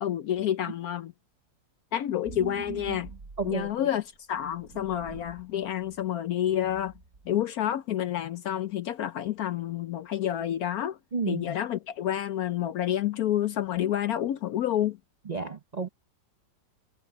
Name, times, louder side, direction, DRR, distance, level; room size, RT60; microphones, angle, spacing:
voice 1, 0.0-1.1 1.9-3.1 3.4-4.0 4.3-6.9 7.2-11.0 11.3-15.0, left 11 dB, 65° left, 0.9 m, -29 dB
sound 1, 2.3-3.8 4.5-5.5 5.8-6.0 6.4-7.3, right 7 dB, 40° right, 2.2 m, -44 dB
voice 2, 3.4-3.9 11.1-11.4 15.3-15.9, right 5 dB, 60° right, 0.4 m, -32 dB
omnidirectional pair, 2.0 m